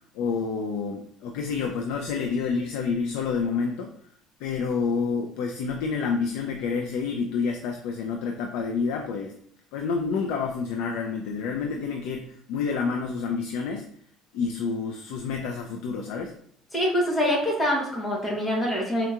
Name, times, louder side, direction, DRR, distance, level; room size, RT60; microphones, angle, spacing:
voice 1, 0.1-3.9 4.4-9.3 9.7-13.9 14.3-16.3, left 5 dB, 80° left, 3 dB, 0.4 m, -28 dB
voice 2, 16.7-19.1, equal, 15° left, -3 dB, 1.0 m, -25 dB
4.4 x 2.8 x 2.4 m, 0.65 s
cardioid pair, 155°, 0 cm